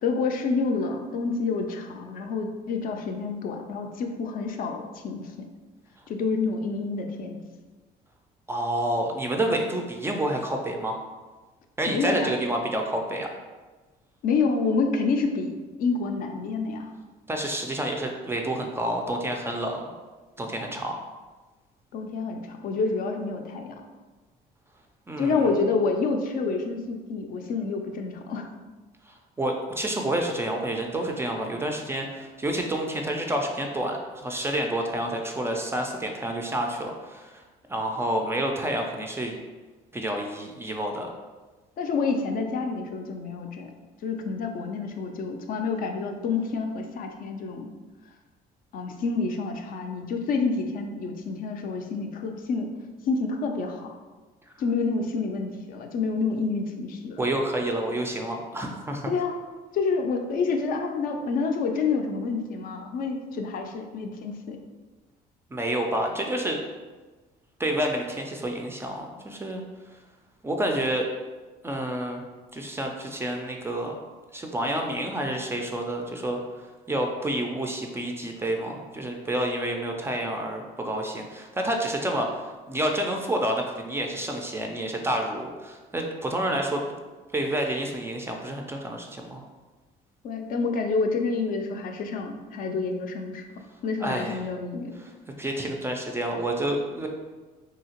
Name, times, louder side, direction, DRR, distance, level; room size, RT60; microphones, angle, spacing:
voice 1, 0.0-5.5 6.1-7.4 11.9-12.4 14.2-16.9 21.9-23.8 25.2-28.5 41.8-43.7 44.0-47.7 48.7-52.7 53.1-54.0 54.6-57.3 59.1-59.4 59.7-64.6 90.2-93.5 93.8-95.0 95.6-95.7, left 4 dB, 55° left, 4 dB, 0.4 m, -28 dB
voice 2, 8.5-11.0 11.8-13.3 17.3-19.9 20.4-20.9 25.1-25.5 29.1-37.4 37.7-39.4 39.9-41.1 57.2-59.2 65.5-66.6 67.6-69.6 70.4-71.1 71.6-72.2 72.5-74.0 74.3-76.4 76.9-86.8 87.3-89.4 94.0-94.4 95.0-95.1 95.4-97.1, right 1 dB, 15° right, 2 dB, 0.3 m, -29 dB
2.8 x 2.7 x 2.8 m, 1.3 s
cardioid pair, 110°, 17 cm